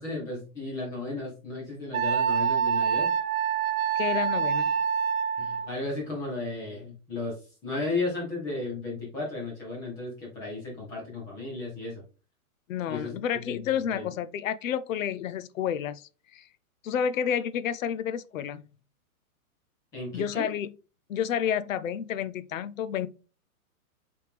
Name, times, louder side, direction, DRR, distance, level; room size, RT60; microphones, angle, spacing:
voice 1, 0.0-3.1 5.4-7.4 7.6-12.0 12.9-14.1 19.9-20.5, left 3 dB, 5° left, 0.6 m, -34 dB
Wind instrument woodwind instrument, 1.9-5.7, right 7 dB, 70° right, 0.7 m, -26 dB
voice 2, 4.0-4.7 12.7-16.5 16.8-18.6 20.1-20.7 21.1-23.1, left 9 dB, 60° left, 0.5 m, -30 dB
4.7 x 3.5 x 3.2 m
hypercardioid pair, 160°, 44 cm